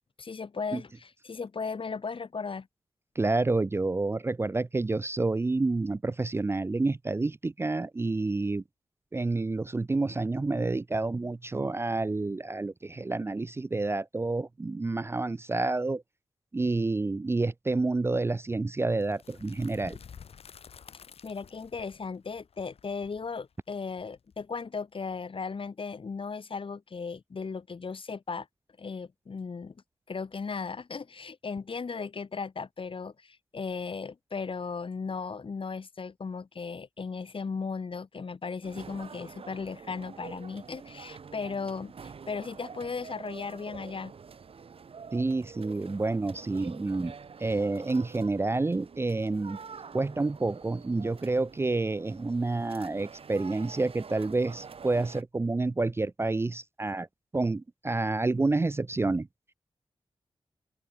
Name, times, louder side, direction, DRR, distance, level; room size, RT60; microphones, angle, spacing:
voice 1, 0.2-2.7 21.2-28.5 28.8-29.7 30.1-44.1, left 5 dB, 60° left, 3.2 m, -36 dB
voice 2, 3.2-8.6 9.1-16.0 16.5-20.0 45.1-47.1 47.4-49.6 49.9-57.1 57.3-59.3, right 3 dB, 25° right, 0.4 m, -29 dB
sound 1, 19.0-24.8, left 7 dB, 80° left, 2.7 m, -51 dB
sound 2, 38.6-55.2, right 6 dB, 70° right, 2.7 m, -47 dB
open air
cardioid pair, 50°, 10 cm